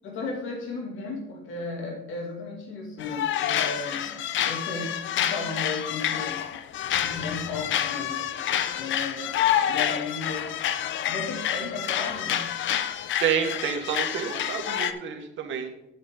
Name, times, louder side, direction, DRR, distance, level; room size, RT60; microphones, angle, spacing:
voice 1, 0.0-4.1 4.4-6.4 7.0-8.2 8.7-10.5 11.1-12.5, left 3 dB, 90° left, 0 dB, 2.5 m, -35 dB
sound 1, 3.0-14.9, left 10 dB, 70° left, 0.6 m, -28 dB
voice 2, 13.2-15.7, right 7 dB, 75° right, 4 dB, 1.6 m, -28 dB
9.4 x 8.1 x 3.9 m, 0.85 s
cardioid pair, 90°, 20 cm